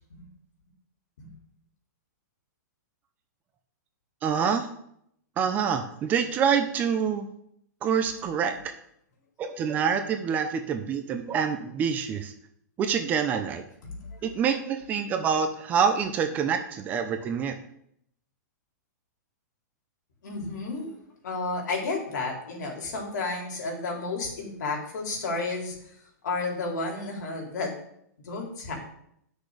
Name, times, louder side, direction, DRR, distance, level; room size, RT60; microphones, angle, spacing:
voice 1, 4.2-4.7 5.4-7.3 7.8-8.6 9.4-12.3 12.8-13.6 14.2-17.5, right 7 dB, 15° right, 7 dB, 0.7 m, -26 dB
voice 2, 20.2-20.9 21.2-25.7 26.2-27.7 28.3-28.7, left 3 dB, 75° left, 0 dB, 3.8 m, -32 dB
10.5 x 6.3 x 5.0 m, 0.72 s
hypercardioid pair, 165°, 10 cm